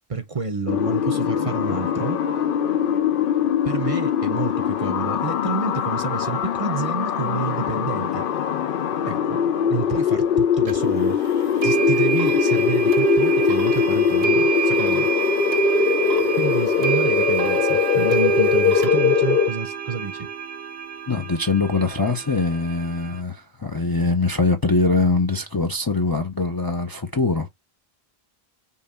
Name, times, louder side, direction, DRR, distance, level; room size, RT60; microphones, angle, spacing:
voice 1, 0.1-2.2 3.6-8.2 9.1-9.4 9.7-11.2 11.6-15.1 16.3-20.3, right 5 dB, 40° right, 0.7 m, -29 dB
sound 1, 0.7-19.5, left 8 dB, 65° left, 0.7 m, -22 dB
sound 2, 10.7-10.8 11.6-23.2, right 8 dB, 75° right, 1.0 m, -26 dB
voice 2, 21.1-27.5, left 3 dB, 30° left, 0.5 m, -22 dB
5.5 x 2.3 x 4.1 m
omnidirectional pair, 1.1 m